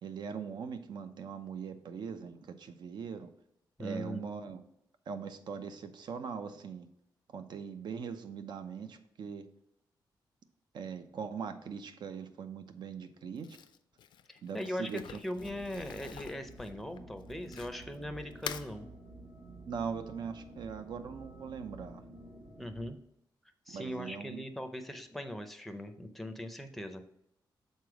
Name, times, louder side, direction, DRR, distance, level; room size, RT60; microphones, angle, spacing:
voice 1, 0.0-3.3 3.8-4.6 5.1-6.9 7.3-9.5 10.7-13.6 14.4-15.0 19.6-22.0 23.7-24.4, right 6 dB, 70° right, 9 dB, 0.6 m, -41 dB
voice 2, 3.8-4.2 14.3-18.9 22.6-23.0 23.7-27.0, equal, ahead, 6 dB, 0.6 m, -40 dB
Crumpling crinkling, 13.4-18.0 18.3-18.7, left 9 dB, 80° left, 0.4 m, -46 dB
sound 1, 15.3-22.9, right 2 dB, 45° right, 1.5 m, -51 dB
6.7 x 4.1 x 4.8 m, 0.79 s
wide cardioid pair, 160°, 8 cm